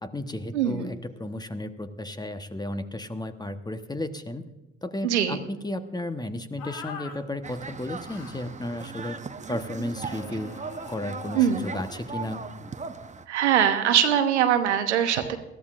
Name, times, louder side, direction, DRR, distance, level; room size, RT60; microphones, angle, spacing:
voice 1, 0.0-4.4 4.8-9.2 9.5-10.5 10.9-12.4, left 1 dB, 10° left, 10 dB, 1.1 m, -33 dB
voice 2, 0.5-0.9 5.0-5.4 11.3-11.7 13.3-15.4, right 9 dB, 90° right, 8 dB, 1.0 m, -22 dB
sound 1, 6.6-7.2 8.0-8.5 10.0-12.4, left 5 dB, 70° left, 1.6 m, -43 dB
sound 2, 7.4-13.3, right 4 dB, 20° right, 0.9 m, -38 dB
20.5 x 14.0 x 2.5 m, 1.0 s
hypercardioid pair, 55°, 33 cm